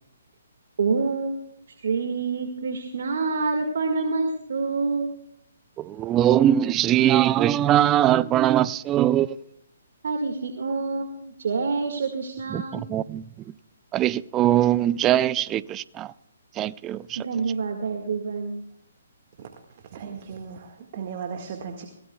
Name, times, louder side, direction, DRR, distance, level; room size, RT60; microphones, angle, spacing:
voice 1, 0.8-5.1 10.0-12.9 17.2-18.6, right 4 dB, 65° right, 1.9 m, -27 dB
voice 2, 5.8-9.4 12.5-13.2 13.9-16.1 16.6-17.2, right 12 dB, 20° right, 0.4 m, -21 dB
voice 3, 19.9-21.9, right 6 dB, 45° right, 1.8 m, -36 dB
23.0 x 17.5 x 2.3 m
hypercardioid pair, 140°, 0 cm